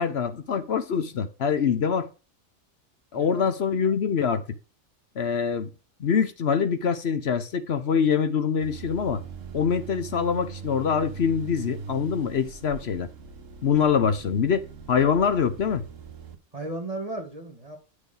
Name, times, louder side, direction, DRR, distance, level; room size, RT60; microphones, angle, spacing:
voice 1, 0.0-2.1 3.1-4.4 5.2-5.7 6.0-9.2 9.5-13.1 13.6-15.8, left 6 dB, 55° left, 1.0 m, -24 dB
voice 2, 3.1-3.5 16.5-17.8, right 2 dB, 25° right, 2.3 m, -35 dB
sound 1, 8.6-16.4, right 6 dB, 70° right, 1.5 m, -41 dB
10.5 x 6.3 x 3.9 m
omnidirectional pair, 1.4 m